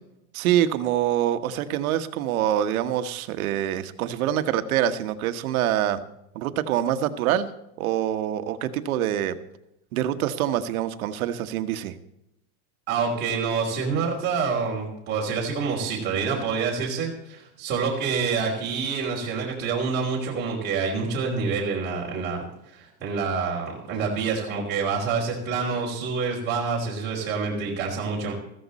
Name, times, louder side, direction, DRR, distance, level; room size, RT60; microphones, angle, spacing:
voice 1, 0.3-6.0 6.3-7.5 7.8-9.4 9.9-11.9, right 11 dB, 75° right, 10 dB, 1.4 m, -25 dB
voice 2, 12.9-28.3, right 5 dB, 25° right, -5 dB, 3.6 m, -27 dB
15.0 x 14.5 x 4.2 m, 0.83 s
supercardioid pair, 160°, 43 cm